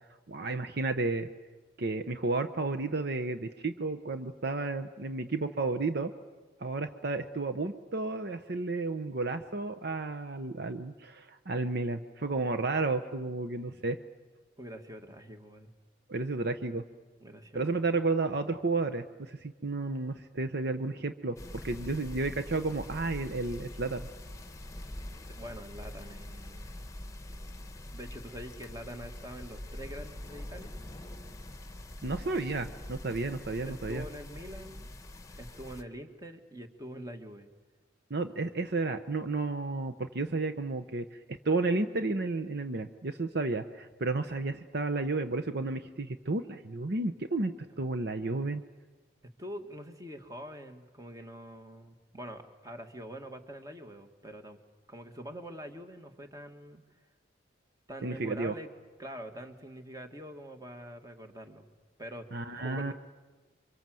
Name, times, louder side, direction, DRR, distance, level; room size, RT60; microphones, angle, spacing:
voice 1, 0.3-1.3 1.8-6.1 6.6-14.0 16.1-16.8 17.5-21.4 21.6-24.1 32.0-34.0 38.1-48.6 58.0-58.5 62.3-62.9, right 3 dB, 55° right, 9 dB, 0.9 m, -32 dB
voice 2, 14.6-15.7 16.4-16.5 17.2-17.8 25.2-26.8 27.9-30.7 33.6-34.9 35.4-37.5 47.8-47.9 49.4-54.6 54.9-56.8 57.9-58.7 59.0-61.7 62.0-62.9, equal, 20° right, 6 dB, 1.8 m, -45 dB
sound 1, 21.4-35.8, left 1 dB, 15° left, 1.2 m, -44 dB
28.5 x 24.5 x 7.7 m, 1.3 s
head